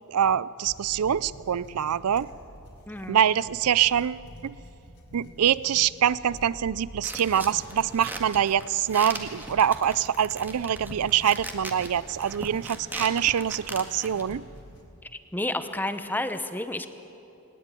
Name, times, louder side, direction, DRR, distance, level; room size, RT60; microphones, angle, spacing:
voice 1, 0.1-2.3 3.1-4.5 5.1-14.4, right 9 dB, 85° right, 20 dB, 0.5 m, -25 dB
sound 1, 0.6-14.9, equal, 75° left, 4.8 m, -49 dB
voice 2, 2.9-3.2 15.0-16.9, left 1 dB, 10° left, 10 dB, 0.9 m, -31 dB
sound 2, 7.0-14.2, right 1 dB, 10° right, 1.8 m, -39 dB
20.0 x 20.0 x 9.1 m, 2.9 s
head